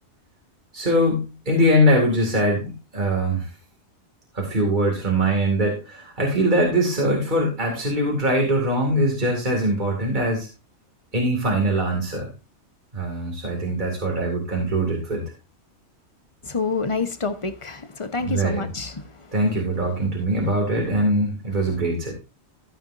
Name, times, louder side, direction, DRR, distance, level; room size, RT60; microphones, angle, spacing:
voice 1, 0.7-3.4 4.3-10.5 11.1-12.3 12.9-15.2 18.2-18.6 19.3-22.1, right 1 dB, 45° right, 2.7 m, -22 dB
voice 2, 16.4-19.4 21.7-21.8, left 4 dB, 30° left, 1.1 m, -28 dB
14.0 x 8.7 x 2.7 m
omnidirectional pair, 1.1 m